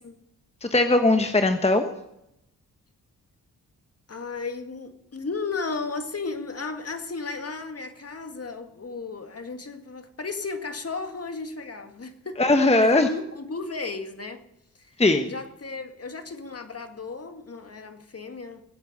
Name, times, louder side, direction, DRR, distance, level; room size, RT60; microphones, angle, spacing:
voice 1, 0.6-1.9 12.4-13.1 15.0-15.3, left 2 dB, 15° left, 1.2 m, -19 dB
voice 2, 4.1-12.4 12.8-14.4 14.8-14.9 15.2-18.6, left 4 dB, 35° left, 2.0 m, -34 dB
20.5 x 8.3 x 6.7 m
hypercardioid pair, 40°, 41 cm